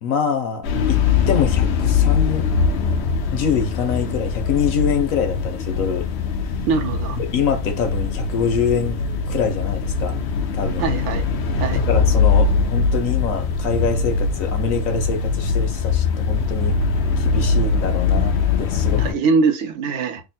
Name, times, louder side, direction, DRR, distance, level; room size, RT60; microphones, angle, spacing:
voice 1, 0.0-2.5 3.3-6.1 6.4-6.5 7.2-9.0 9.3-10.2 10.5-10.9 11.7-16.8 17.2-19.0, left 6 dB, 80° left, 1.3 m, -24 dB
sound 1, 0.6-19.1, left 5 dB, 60° left, 0.8 m, -21 dB
voice 2, 6.6-7.2 10.8-11.2 11.6-11.8 19.0-20.2, right 4 dB, 70° right, 0.8 m, -22 dB
3.6 x 2.1 x 4.0 m
omnidirectional pair, 1.4 m